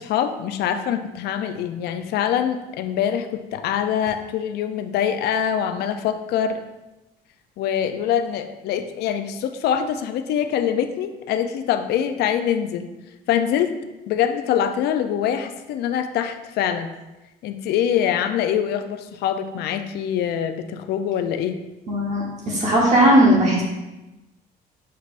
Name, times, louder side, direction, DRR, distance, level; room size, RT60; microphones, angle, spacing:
voice 1, 0.0-6.6 7.6-12.9 13.3-13.7 14.1-16.9 17.4-21.6, left 9 dB, 75° left, 9 dB, 0.4 m, -24 dB
voice 2, 21.9-23.6, right 1 dB, 45° right, -3 dB, 1.0 m, -17 dB
6.6 x 3.3 x 2.5 m, 1.0 s
cardioid pair, 110°, 17 cm